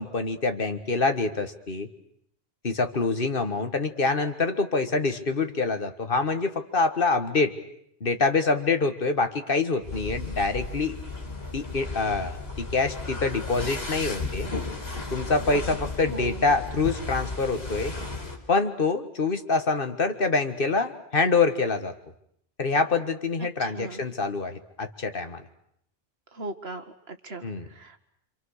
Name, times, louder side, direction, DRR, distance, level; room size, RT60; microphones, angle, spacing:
voice 1, 0.0-1.9 2.6-7.6 8.0-11.0 11.5-14.5 15.1-17.9 18.5-21.9 22.6-25.4 27.4-27.7, left 3 dB, 60° left, 8 dB, 1.8 m, -26 dB
sound 1, 9.8-18.4, left 3 dB, 75° left, 4.0 m, -34 dB
voice 2, 16.1-16.5 23.4-24.0 26.3-28.0, right 2 dB, 85° right, 8 dB, 2.0 m, -39 dB
27.0 x 27.0 x 6.6 m, 0.70 s
omnidirectional pair, 1.0 m